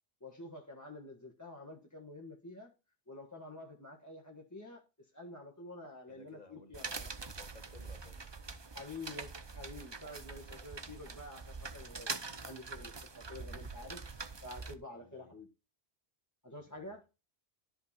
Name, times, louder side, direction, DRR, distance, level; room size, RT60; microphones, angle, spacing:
voice 1, 0.2-2.7 3.1-7.1 8.7-12.1 12.4-14.0 14.4-15.5 16.4-17.0, left 2 dB, 15° left, 1.6 m, -49 dB
voice 2, 6.1-6.8 7.1-8.3 13.4-13.7 14.9-15.3 16.5-16.8, left 3 dB, 40° left, 1.9 m, -59 dB
sound 1, 6.7-14.7, right 4 dB, 30° right, 0.7 m, -44 dB
13.0 x 5.5 x 4.3 m
omnidirectional pair, 1.1 m